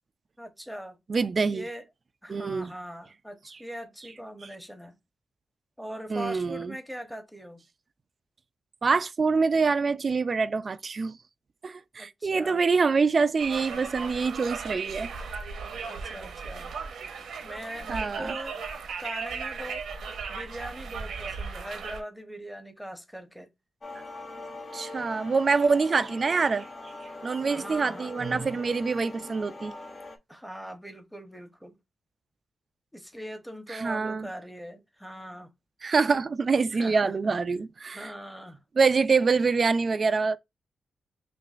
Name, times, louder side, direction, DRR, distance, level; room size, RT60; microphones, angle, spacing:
voice 1, 0.4-1.0 1.5-1.8 2.2-5.0 5.8-7.6 12.0-12.6 15.9-16.8 17.4-18.7 19.0-23.5 27.4-28.1 30.3-31.8 32.9-35.5 36.8-37.3 37.9-38.6, equal, ahead, 1.0 m, -41 dB
voice 2, 1.1-1.6 2.3-2.7 3.5-3.6 6.1-6.8 8.8-11.1 11.6-15.2 17.9-18.3 24.7-26.7 27.2-29.7 33.7-34.3 35.8-38.1 38.8-40.4, right 4 dB, 40° right, 0.4 m, -25 dB
Conversation, 13.4-22.0, right 5 dB, 90° right, 1.0 m, -36 dB
sound 1, 23.8-30.2, left 2 dB, 35° left, 0.9 m, -42 dB
5.6 x 2.6 x 2.5 m
cardioid pair, 105°, 0 cm